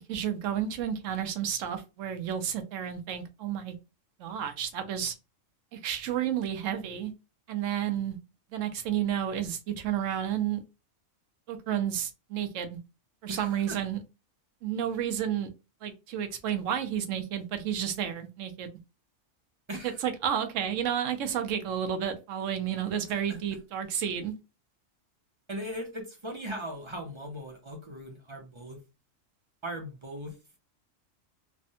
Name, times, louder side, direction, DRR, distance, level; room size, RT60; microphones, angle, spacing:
voice 1, 0.1-3.8 4.2-5.1 5.7-7.1 7.5-8.2 8.5-10.6 11.5-12.8 13.2-14.0 14.6-15.5 15.8-18.7 19.8-24.3, right 9 dB, 75° right, 1.0 m, -31 dB
voice 2, 13.3-13.8 19.7-20.0 23.3-23.4 25.5-28.8 29.6-30.6, equal, 35° right, 0.5 m, -39 dB
3.3 x 2.1 x 2.6 m
omnidirectional pair, 1.3 m